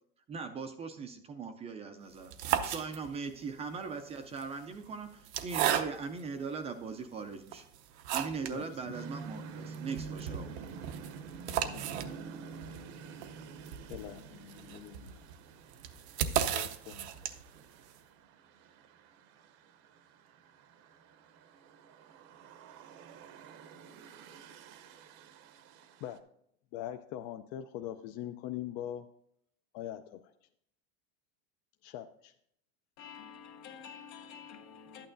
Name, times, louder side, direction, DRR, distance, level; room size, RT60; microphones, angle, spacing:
voice 1, 0.3-7.6 8.1-10.5, right 5 dB, 20° right, 0.4 m, -40 dB
sound 1, 2.1-3.4 4.2-6.3 6.9-7.0 7.5-8.6 8.9-9.0 9.3-9.4 9.7-17.6, right 10 dB, 90° right, 0.7 m, -35 dB
voice 2, 8.5-8.9 11.7-12.0 13.9-15.2 16.4-17.1 26.0-26.2 26.7-29.1 29.7-30.3 31.8-32.3, left 11 dB, 45° left, 0.4 m, -42 dB
sound 2, 8.9-26.2, right 5 dB, 45° right, 0.7 m, -48 dB
voice 3, 33.0-35.1, left 7 dB, 75° left, 1.3 m, -49 dB
11.5 x 8.9 x 2.6 m
supercardioid pair, 150°, 33 cm